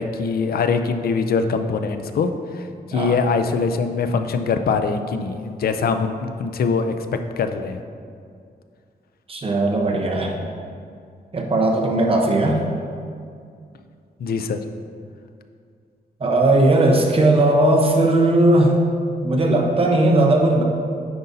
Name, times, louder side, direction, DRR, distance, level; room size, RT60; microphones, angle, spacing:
voice 1, 0.0-6.9 7.4-7.8 14.2-14.6, left 5 dB, 65° left, 8 dB, 0.5 m, -23 dB
voice 2, 9.3-10.4 11.3-12.6 16.2-18.8 19.2-20.6, right 2 dB, 35° right, 0 dB, 0.9 m, -17 dB
9.5 x 5.2 x 2.7 m, 2.3 s
wide cardioid pair, 120°, 17 cm